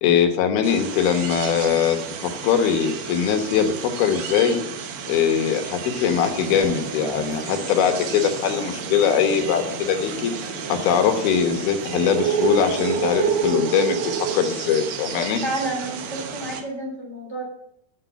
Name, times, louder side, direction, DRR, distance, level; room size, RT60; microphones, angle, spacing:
voice 1, 0.0-2.0 2.2-4.6 5.1-10.3 10.7-15.4, left 8 dB, 75° left, 5 dB, 2.9 m, -21 dB
sound 1, 0.6-16.6, right 6 dB, 85° right, 3.2 m, -30 dB
sound 2, 6.1-13.0, right 2 dB, 40° right, 2.8 m, -37 dB
voice 2, 15.4-17.4, right 2 dB, 5° left, -2 dB, 3.0 m, -30 dB
7.5 x 7.4 x 8.0 m, 0.72 s
omnidirectional pair, 4.6 m